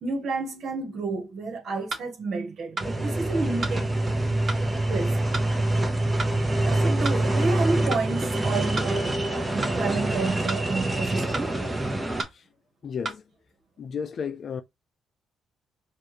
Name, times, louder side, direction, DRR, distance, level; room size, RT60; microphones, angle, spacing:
voice 1, 0.0-3.9 4.9-5.2 6.6-9.1 9.5-11.5, right 3 dB, 60° right, 1.5 m, -30 dB
sound 1, 1.9-2.1 2.8-2.9 3.6-3.8 4.5-4.6 5.3-5.5 6.2-6.4 7.0-7.2 7.9-8.1 8.8-8.9 9.6-9.8 10.5-10.6 11.3-11.5 12.2-12.4 13.0-13.2, right 3 dB, 35° right, 1.6 m, -32 dB
sound 2, 2.8-12.2, right 1 dB, 15° right, 1.1 m, -25 dB
voice 2, 12.8-13.2 13.8-14.6, left 6 dB, 55° left, 0.5 m, -33 dB
4.6 x 2.7 x 3.1 m
cardioid pair, 90°, 0 cm